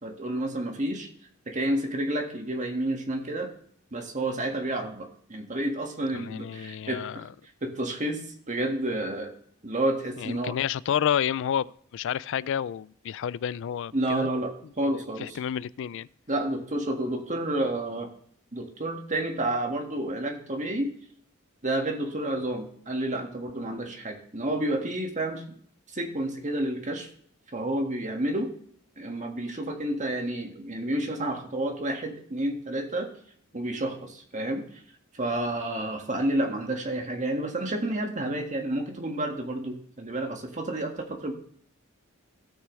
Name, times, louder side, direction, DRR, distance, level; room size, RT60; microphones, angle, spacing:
voice 1, 0.0-1.1 1.5-3.5 3.9-7.3 7.6-8.2 8.5-9.3 9.6-10.5 13.9-15.4 16.3-18.1 18.5-20.9 21.6-25.4 25.9-27.1 27.5-28.5 29.0-33.1 33.5-34.6 35.1-41.3, right 1 dB, 35° right, 1.7 m, -30 dB
voice 2, 6.1-7.3 10.2-14.3 15.2-16.1, left 9 dB, 65° left, 0.3 m, -30 dB
17.0 x 6.2 x 3.1 m
head